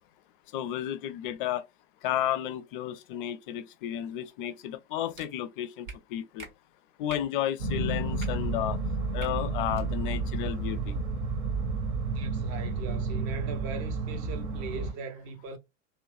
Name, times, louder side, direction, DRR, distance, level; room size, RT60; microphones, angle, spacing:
voice 1, 0.5-1.6 2.0-6.5 7.0-8.8 9.1-11.0, left 11 dB, 40° left, 0.4 m, -32 dB
sound 1, 5.1-5.3 5.8-6.0 6.4-6.5 7.1-7.3 8.1-8.3 9.2-9.3 9.7-9.9, right 3 dB, 80° right, 1.1 m, -44 dB
sound 2, 7.6-14.9, right 3 dB, 60° right, 1.0 m, -31 dB
voice 2, 12.1-15.6, right 4 dB, 35° right, 0.7 m, -40 dB
3.0 x 2.1 x 2.3 m
figure-of-eight pair, 90°, 40 cm